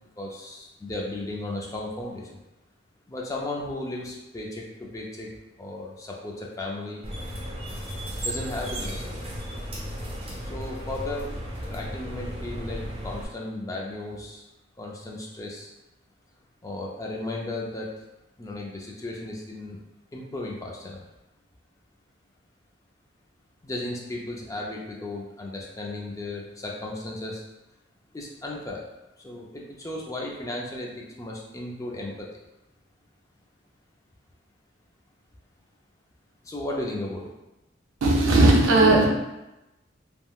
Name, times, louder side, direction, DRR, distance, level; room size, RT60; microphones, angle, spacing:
voice 1, 0.2-2.4 3.1-5.3 5.6-7.1 8.2-9.3 10.4-11.3 11.7-14.4 14.8-15.7 16.6-17.9 18.4-19.8 20.1-21.0 23.6-27.4 28.1-28.8 29.2-32.3 36.4-37.3, left 2 dB, 15° left, -2 dB, 0.4 m, -35 dB
sound 1, 7.0-13.2, equal, 30° right, 0.6 m, -34 dB
voice 2, 38.0-39.1, right 2 dB, 80° right, 0 dB, 0.5 m, -17 dB
3.4 x 2.1 x 2.3 m, 0.97 s
head